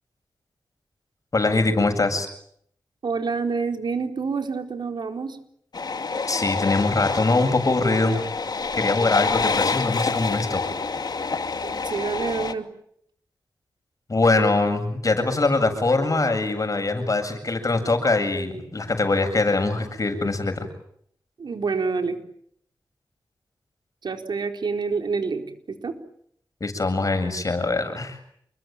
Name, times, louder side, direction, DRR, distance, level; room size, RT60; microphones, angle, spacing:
voice 1, 1.3-2.3 6.3-8.2 8.8-10.6 14.1-20.7 26.6-28.2, left 3 dB, 45° left, 7 dB, 7.9 m, -22 dB
voice 2, 3.0-5.4 11.6-12.7 21.4-22.2 24.0-25.9, right 4 dB, 75° right, 5 dB, 4.3 m, -27 dB
sound 1, 5.7-12.5, left 4 dB, 60° left, 2.4 m, -27 dB
29.0 x 22.5 x 9.2 m, 0.68 s
cardioid pair, 55°, 8 cm